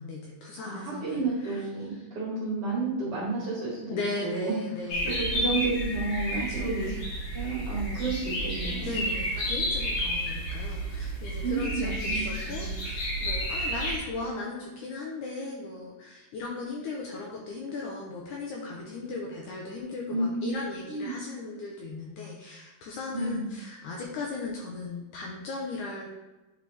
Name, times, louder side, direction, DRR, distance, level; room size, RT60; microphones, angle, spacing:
voice 1, 0.0-1.6 2.0-2.1 3.9-5.2 6.3-6.8 8.8-26.1, left 3 dB, 70° left, -2 dB, 2.0 m, -37 dB
voice 2, 0.6-4.6 5.0-6.9 7.3-9.0 10.3-10.5 11.4-12.7 20.1-20.5 20.9-21.1 23.1-23.5, right 3 dB, 45° right, -5 dB, 2.2 m, -31 dB
sound 1, 4.9-14.0, equal, 55° left, 3.7 m, -31 dB
9.0 x 5.0 x 3.4 m, 1.1 s
omnidirectional pair, 4.3 m